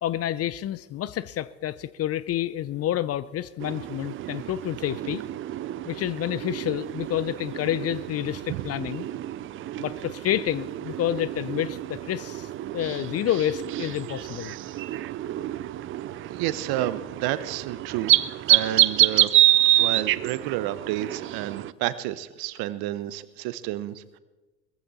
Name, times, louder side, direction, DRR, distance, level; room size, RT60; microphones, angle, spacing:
voice 1, 0.0-5.2 5.9-9.1 9.8-14.5, left 12 dB, 30° left, 18 dB, 0.6 m, -29 dB
sound 1, 3.6-21.7, right 14 dB, 30° right, 0.5 m, -27 dB
voice 2, 16.3-18.1 18.5-19.3 19.8-24.2, right 14 dB, 50° right, 15 dB, 1.1 m, -30 dB
20.5 x 14.5 x 4.2 m, 1.2 s
hypercardioid pair, 80°, 48 cm